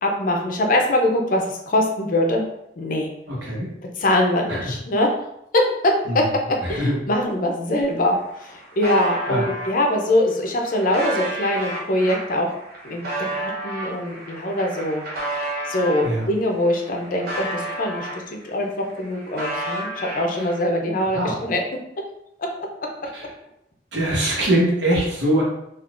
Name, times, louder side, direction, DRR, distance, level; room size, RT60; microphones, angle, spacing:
voice 1, 0.0-2.4 2.8-3.1 4.0-5.1 5.5-6.3 6.7-12.5 12.8-15.0 15.7-21.6 22.4-22.5, left 1 dB, 50° left, 2 dB, 0.5 m, -23 dB
voice 2, 3.3-3.7 4.5-4.6 6.1-6.2 6.6-7.0 9.3-9.5 16.0-16.2 21.1-21.3 23.1-23.2 23.9-25.4, right 1 dB, 75° right, -4 dB, 1.1 m, -22 dB
sound 1, 7.8-7.9 8.1-9.7 10.3-16.1 16.6-18.5 18.8-20.6, right 1 dB, 55° right, 0.8 m, -31 dB
3.6 x 2.4 x 2.4 m, 0.79 s
head